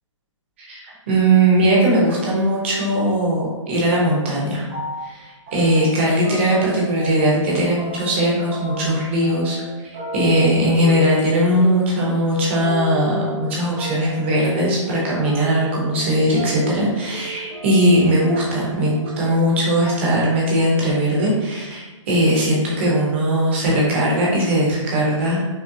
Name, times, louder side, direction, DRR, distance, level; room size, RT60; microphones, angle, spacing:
voice 1, 0.7-4.6 5.0-9.6 9.8-25.4, right 1 dB, 20° right, -4 dB, 0.8 m, -19 dB
sound 1, 4.7-5.2 5.5-7.5 7.8-19.5 19.8-20.3 20.5-20.9, right 1 dB, 5° right, 0.3 m, -34 dB
5.4 x 2.1 x 2.6 m, 1.2 s
hypercardioid pair, 175°, 17 cm